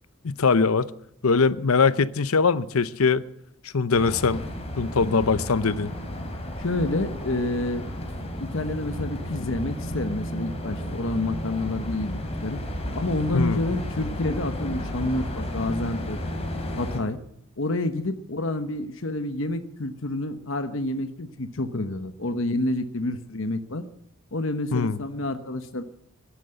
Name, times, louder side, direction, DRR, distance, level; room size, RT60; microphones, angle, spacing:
voice 1, 0.2-0.9 1.2-3.2 3.6-4.4 4.8-5.9 13.3-13.6 24.7-25.0, left 4 dB, 75° left, 0.7 m, -22 dB
sound 1, 3.9-17.0, equal, 30° left, 2.9 m, -33 dB
voice 2, 6.6-7.8 8.4-12.6 12.9-16.2 16.8-17.2 17.6-23.8 24.3-25.8, left 2 dB, 60° left, 1.0 m, -28 dB
15.5 x 11.5 x 7.8 m
head